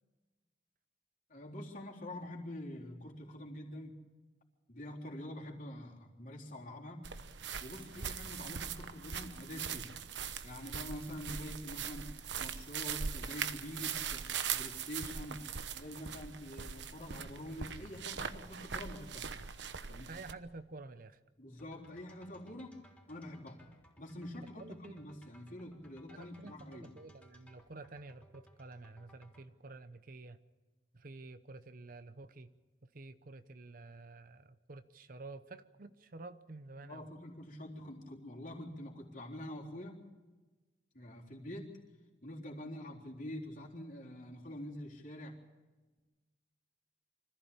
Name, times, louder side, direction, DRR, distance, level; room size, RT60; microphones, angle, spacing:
voice 1, 1.3-4.0 4.7-7.1 7.6-10.0 10.4-12.1 12.4-15.5 15.7-19.3 19.9-20.1 21.4-22.8 23.1-23.6 24.0-26.9 36.9-40.0 40.9-41.8 42.2-45.4, left 1 dB, 45° left, -2 dB, 3.8 m, -46 dB
sound 1, 7.0-20.3, right 7 dB, 80° right, 1.1 m, -41 dB
voice 2, 20.1-21.2 24.6-25.0 26.1-30.4 30.9-32.5 32.8-37.1, right 3 dB, 50° right, 12 dB, 0.8 m, -50 dB
sound 2, 21.6-29.5, equal, 10° left, 3.7 m, -62 dB
25.0 x 15.0 x 8.7 m, 1.3 s
head